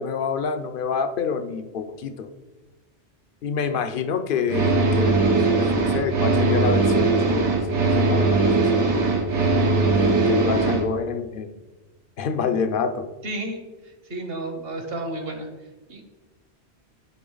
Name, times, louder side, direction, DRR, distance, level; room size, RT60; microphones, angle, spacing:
voice 1, 0.0-2.3 3.4-5.3 5.6-8.7 9.9-11.5 12.2-13.1, left 6 dB, 60° left, 9 dB, 0.7 m, -27 dB
sound 1, 4.5-10.8, right 3 dB, 85° right, 1.3 m, -20 dB
voice 2, 13.2-13.6 14.1-15.5 15.9-16.0, right 2 dB, 60° right, 5 dB, 1.2 m, -31 dB
10.0 x 3.8 x 3.9 m, 1.2 s
omnidirectional pair, 1.2 m